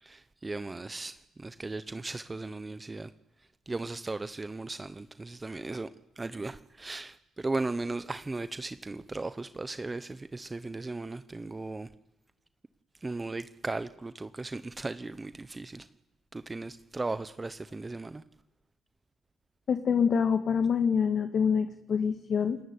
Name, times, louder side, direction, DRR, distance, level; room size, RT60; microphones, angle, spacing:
voice 1, 0.0-3.1 3.7-5.9 6.2-11.9 13.0-15.9 16.3-18.2, right 3 dB, 20° right, 12 dB, 1.1 m, -37 dB
voice 2, 19.7-22.6, left 6 dB, 55° left, 8 dB, 2.0 m, -26 dB
29.0 x 20.5 x 9.8 m, 0.88 s
cardioid pair, 90°, 0 cm